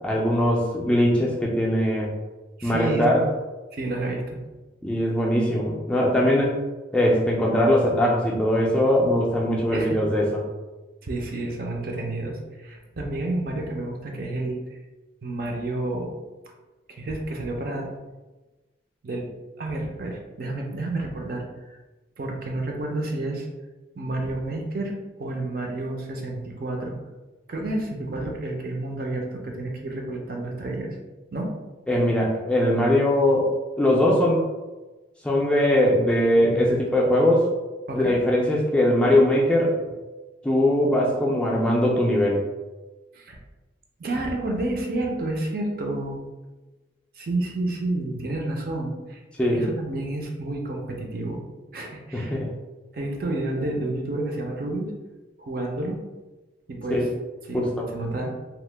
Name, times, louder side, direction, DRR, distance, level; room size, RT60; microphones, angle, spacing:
voice 1, 0.0-2.1 2.6-3.3 4.8-6.6 6.9-10.4 31.9-33.5 33.8-34.4 35.2-37.5 37.9-39.7 40.4-42.4 49.4-49.7 52.1-52.5 56.9-57.0 57.5-57.9, left 1 dB, 5° left, -3 dB, 0.3 m, -21 dB
voice 2, 2.6-3.3 3.7-4.4 9.7-9.9 11.0-14.6 15.2-16.1 16.9-17.9 19.0-21.8 22.2-23.5 23.9-26.9 27.5-30.9 31.3-31.5 36.4-36.8 37.9-38.1 43.1-43.4 44.0-46.2 47.2-49.2 49.5-51.4 51.7-52.4 52.9-54.9 55.4-56.0 56.7-57.1 57.4-58.3, right 2 dB, 50° right, 1 dB, 0.5 m, -30 dB
2.8 x 2.1 x 3.2 m, 1.2 s
head